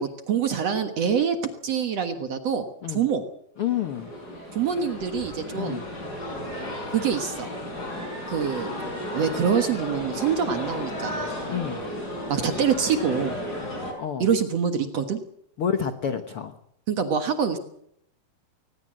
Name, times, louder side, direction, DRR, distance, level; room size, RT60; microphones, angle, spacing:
voice 1, 0.0-1.4 1.6-3.2 4.5-5.8 6.9-7.5 8.3-8.7 9.1-11.3 12.3-13.4 14.2-15.2 16.9-17.6, right 7 dB, 55° right, 7 dB, 2.0 m, -25 dB
voice 2, 3.6-4.1 5.5-5.8 11.5-11.8 14.0-14.3 15.6-16.6, left 8 dB, 75° left, 9 dB, 1.2 m, -28 dB
sound 1, 3.6-13.9, left 1 dB, 25° left, 5.9 m, -34 dB
20.5 x 20.0 x 7.7 m, 0.74 s
omnidirectional pair, 4.5 m